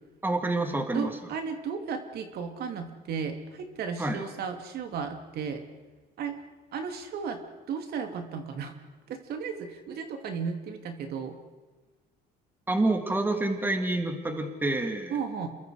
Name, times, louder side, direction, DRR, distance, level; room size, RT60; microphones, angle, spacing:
voice 1, 0.2-1.1 4.0-4.2 12.7-15.2, right 2 dB, 10° right, 5 dB, 2.8 m, -28 dB
voice 2, 0.9-5.6 6.2-6.4 6.7-7.4 7.7-8.7 9.1-11.4 15.1-15.5, right 6 dB, 70° right, 5 dB, 2.8 m, -34 dB
28.5 x 23.0 x 5.0 m, 1.3 s
cardioid pair, 110°, 17 cm